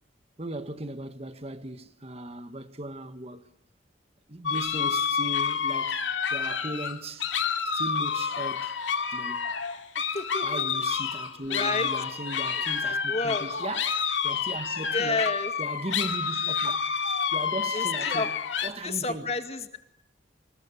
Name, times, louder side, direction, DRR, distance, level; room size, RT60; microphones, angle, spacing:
voice 1, 0.4-3.5 4.3-7.3 7.6-8.7 9.1-9.5 10.4-15.3 15.6-16.9 17.3-18.4 18.6-19.3, right 1 dB, 30° right, 1.5 m, -37 dB
sound 1, 4.5-18.7, left 6 dB, 75° left, 2.5 m, -29 dB
voice 2, 9.9-10.7 11.5-11.9 12.8-13.5 14.9-15.5 17.7-18.3 18.8-19.8, left 3 dB, 35° left, 2.1 m, -30 dB
26.5 x 21.0 x 10.0 m
head